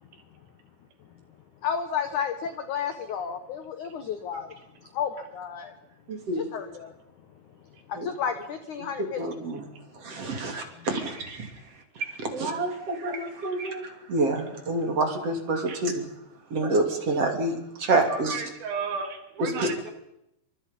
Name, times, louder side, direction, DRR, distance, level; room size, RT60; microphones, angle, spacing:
voice 1, 1.6-4.5 4.9-5.7 6.3-6.9 7.9-9.2 10.8-10.9, left 7 dB, 85° left, 8 dB, 1.7 m, -32 dB
voice 2, 6.1-6.5 7.9-8.1 9.2-9.6 9.9-11.5 12.2-16.0 16.5-18.4 19.4-19.7, right 2 dB, 35° right, 5 dB, 3.2 m, -28 dB
voice 3, 18.1-19.9, right 5 dB, 55° right, 6 dB, 3.6 m, -34 dB
28.5 x 25.5 x 5.4 m, 0.82 s
omnidirectional pair, 5.4 m